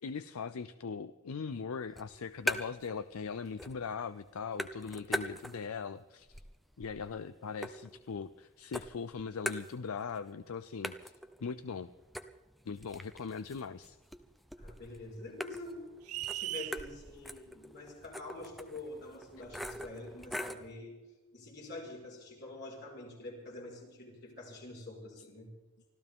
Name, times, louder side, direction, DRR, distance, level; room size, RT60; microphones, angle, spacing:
voice 1, 0.0-6.4 6.8-11.1 11.4-11.9 12.7-14.0, left 5 dB, 75° left, 14 dB, 0.5 m, -40 dB
sound 1, 1.9-3.0 3.3-3.9 4.2-5.8 6.2-8.4 8.7-10.2 10.4-10.5 10.8-20.7, equal, ahead, 0.6 m, -42 dB
voice 2, 14.6-15.8 16.3-21.0 21.3-25.5, left 2 dB, 50° left, -1 dB, 5.0 m, -46 dB
sound 2, 16.1-16.8, right 17 dB, 85° right, 0.5 m, -37 dB
25.0 x 14.5 x 3.7 m, 1.2 s
head